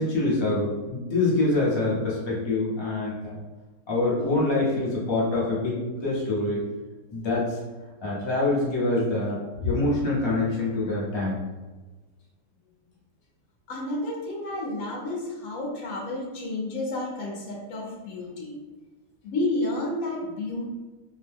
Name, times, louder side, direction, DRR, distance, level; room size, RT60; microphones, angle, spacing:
voice 1, 0.0-3.4 3.9-6.6 7.1-7.6 8.0-11.4, left 2 dB, 45° left, -6 dB, 0.3 m, -25 dB
voice 2, 13.7-18.5 19.2-20.7, left 2 dB, 65° left, -1 dB, 1.0 m, -31 dB
2.7 x 2.1 x 3.3 m, 1.2 s
omnidirectional pair, 1.8 m